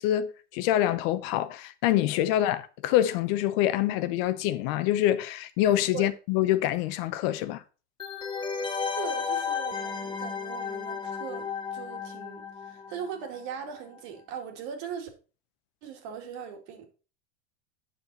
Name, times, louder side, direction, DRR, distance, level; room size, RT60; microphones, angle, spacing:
voice 1, 0.0-7.6, left 13 dB, 55° left, 0.8 m, -26 dB
sound 1, 8.0-13.5 13.7-13.8, left 6 dB, 15° left, 1.0 m, -33 dB
voice 2, 8.9-15.1 15.8-16.9, right 7 dB, 60° right, 2.2 m, -39 dB
8.6 x 5.8 x 4.1 m
supercardioid pair, 130°, 34 cm